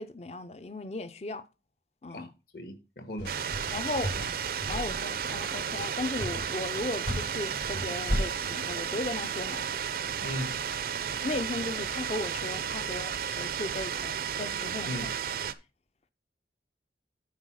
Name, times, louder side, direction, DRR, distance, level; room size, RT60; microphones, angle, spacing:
voice 1, 0.0-1.5 2.0-2.3 3.7-4.2 4.7-9.7 11.2-14.9, left 2 dB, 35° left, 0.6 m, -36 dB
voice 2, 2.1-3.3 10.2-10.5 14.9-15.1, left 1 dB, 60° left, 1.6 m, -37 dB
sound 1, 3.2-8.2, equal, 80° left, 4.8 m, -34 dB
sound 2, 3.3-15.5, right 8 dB, 55° right, 0.5 m, -33 dB
9.6 x 4.1 x 6.2 m
head